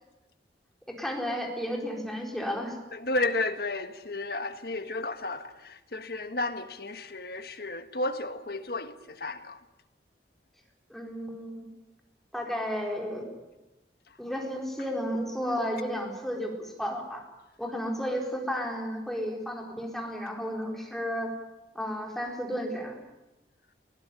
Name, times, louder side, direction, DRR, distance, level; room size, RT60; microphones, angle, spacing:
voice 1, 0.8-2.8 10.9-11.7 12.3-13.3 14.2-17.2 17.6-21.3 21.7-23.0, equal, ahead, 4.3 m, -33 dB
voice 2, 2.9-9.6 14.1-14.2, left 2 dB, 60° left, 1.6 m, -33 dB
22.0 x 17.5 x 9.9 m
head